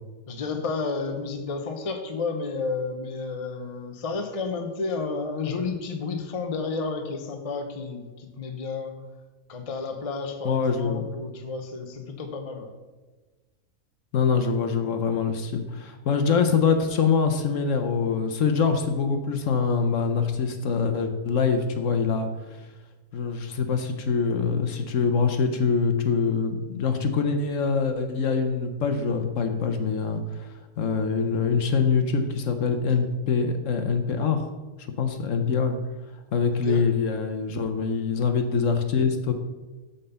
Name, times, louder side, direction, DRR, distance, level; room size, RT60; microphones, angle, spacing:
voice 1, 0.3-8.9 9.5-12.7 36.5-36.8, left 4 dB, 30° left, 5 dB, 0.8 m, -31 dB
voice 2, 10.4-11.1 14.1-22.7 23.1-34.4 35.0-35.8 36.3-39.3, left 5 dB, 65° left, 7 dB, 1.1 m, -24 dB
9.0 x 4.3 x 6.8 m, 1.3 s
omnidirectional pair, 1.5 m